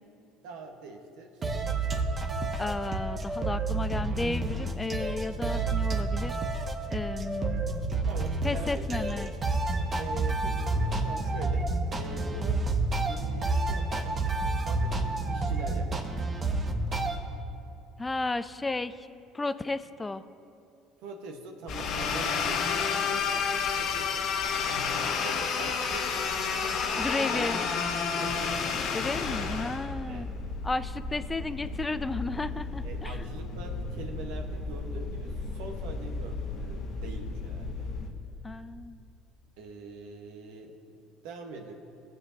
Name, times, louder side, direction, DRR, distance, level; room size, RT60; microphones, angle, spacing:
voice 1, 0.4-1.4 8.1-8.9 10.0-11.7 11.9-12.6 13.0-14.2 14.6-16.1 21.0-24.3 24.6-26.3 26.9-27.5 28.1-28.7 29.4-29.5 30.1-30.3 32.8-37.9 39.6-40.8 41.2-41.7, right 3 dB, 75° right, 3 dB, 1.3 m, -43 dB
sound 1, 1.4-17.2, right 2 dB, 35° right, 1.3 m, -29 dB
voice 2, 2.6-6.4 6.9-7.6 8.4-9.3 18.0-19.1 19.3-20.2 27.0-27.6 28.9-30.4 30.6-33.2 38.4-39.0, left 3 dB, 20° left, 12 dB, 0.4 m, -33 dB
sound 2, 21.7-38.1, left 5 dB, 65° left, 1.1 m, -31 dB
18.5 x 7.9 x 2.8 m, 2.7 s
supercardioid pair, 80°, 0 cm